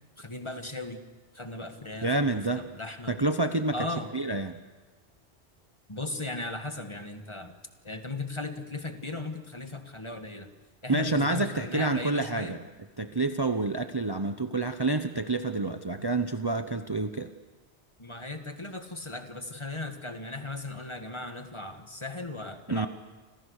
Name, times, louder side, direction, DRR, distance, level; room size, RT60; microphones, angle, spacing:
voice 1, 0.2-1.0 1.3-3.2 3.7-4.1 5.9-7.5 7.8-10.5 10.8-12.6 18.0-22.9, left 2 dB, 25° left, 6 dB, 1.9 m, -37 dB
voice 2, 2.0-2.7 3.1-3.7 4.1-4.6 10.9-12.6 13.0-17.3 22.7-22.9, right 2 dB, 25° right, 8 dB, 0.8 m, -28 dB
30.0 x 26.5 x 6.6 m, 1.3 s
omnidirectional pair, 1.1 m